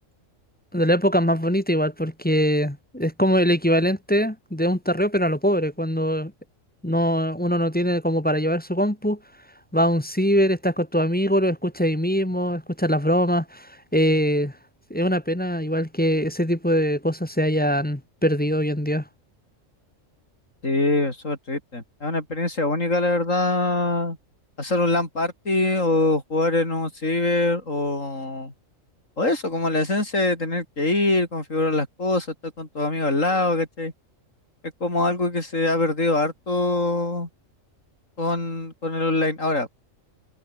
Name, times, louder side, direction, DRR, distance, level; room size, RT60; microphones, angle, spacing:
voice 1, 0.7-6.3 6.8-9.2 9.7-14.5 14.9-19.0, equal, 5° left, 1.5 m, -22 dB
voice 2, 20.6-24.2 24.6-28.5 29.2-33.9 34.8-37.3 38.2-39.7, left 2 dB, 75° left, 6.1 m, -24 dB
omnidirectional pair, 1.4 m